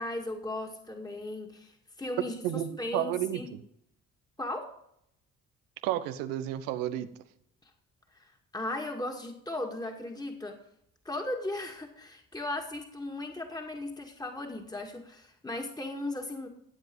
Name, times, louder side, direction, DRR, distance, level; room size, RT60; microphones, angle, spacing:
voice 1, 0.0-3.5 4.4-4.7 7.6-7.7 8.1-8.2 8.5-10.6 11.0-16.5, left 2 dB, 10° left, 2 dB, 2.2 m, -37 dB
voice 2, 2.4-3.4 5.8-7.1, right 12 dB, 90° right, 11 dB, 0.9 m, -31 dB
16.0 x 7.8 x 5.5 m, 0.74 s
supercardioid pair, 60°, 33 cm